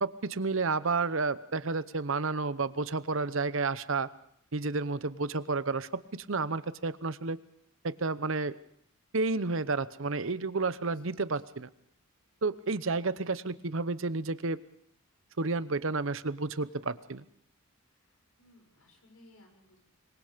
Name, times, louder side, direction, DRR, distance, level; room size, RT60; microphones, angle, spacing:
voice 1, 0.0-4.1 4.5-7.4 7.8-8.5 9.1-11.7 12.4-14.6 15.4-17.2, right 3 dB, 60° right, 15 dB, 0.9 m, -31 dB
voice 2, 18.0-19.8, left 1 dB, 80° left, 3 dB, 6.9 m, -60 dB
25.5 x 22.5 x 5.2 m, 0.67 s
head